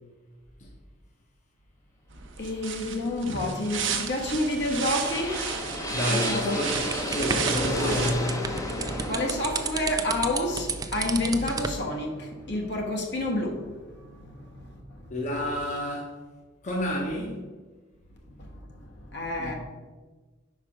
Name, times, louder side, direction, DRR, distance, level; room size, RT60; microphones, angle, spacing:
sound 1, 2.1-8.1, right 7 dB, 70° right, 0.8 m, -33 dB
voice 1, 2.4-5.7 6.1-6.6 7.7-8.0 9.0-15.1 18.4-18.5 18.8-19.5, left 1 dB, 60° left, 1.2 m, -30 dB
sound 2, 4.2-12.1, left 1 dB, 15° left, 0.6 m, -33 dB
voice 2, 5.9-6.8 7.1-8.5 15.1-16.1 16.6-17.4 19.4-19.5, left 1 dB, 40° left, 1.0 m, -30 dB
sound 3, 6.8-11.8, right 4 dB, 20° right, 0.4 m, -32 dB
4.8 x 4.7 x 5.7 m
head